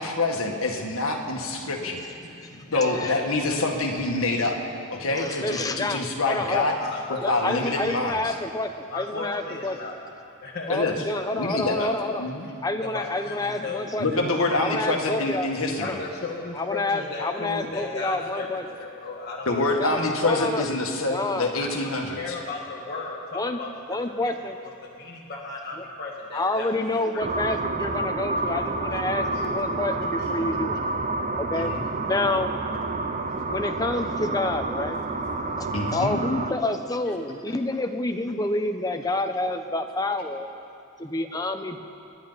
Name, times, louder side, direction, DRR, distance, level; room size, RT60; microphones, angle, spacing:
voice 1, 0.0-2.1 2.4-2.5 2.7-4.6 4.9-6.8 7.2-8.2 10.7-10.9 11.4-11.9 12.2-12.5 14.0-16.0 19.5-22.2 31.6-31.8 35.7-36.2, left 2 dB, 70° left, 1 dB, 1.8 m, -26 dB
voice 2, 1.5-3.2 3.9-4.0 5.0-5.3 6.8-7.6 8.9-10.0 10.4-11.0 12.8-14.2 15.8-19.9 20.4-20.5 21.5-21.7 22.1-24.3 24.8-27.2 29.3-29.4 30.2-30.3 33.2-33.3 37.5-37.6, left 3 dB, 50° left, -4 dB, 1.6 m, -36 dB
voice 3, 5.2-6.7 7.2-9.8 10.7-12.3 12.6-14.1 14.6-15.5 15.8-16.0 16.6-18.6 19.8-20.7 21.1-21.6 23.3-23.6 23.9-24.6 25.8-25.9 26.3-30.8 31.4-31.7 32.0-32.5 33.5-35.0 35.6-40.5 41.0-41.8, left 2 dB, 15° left, 5 dB, 0.8 m, -28 dB
sound 1, 27.2-36.5, right 3 dB, 35° right, 0.7 m, -29 dB
29.0 x 10.5 x 4.1 m, 2.7 s
head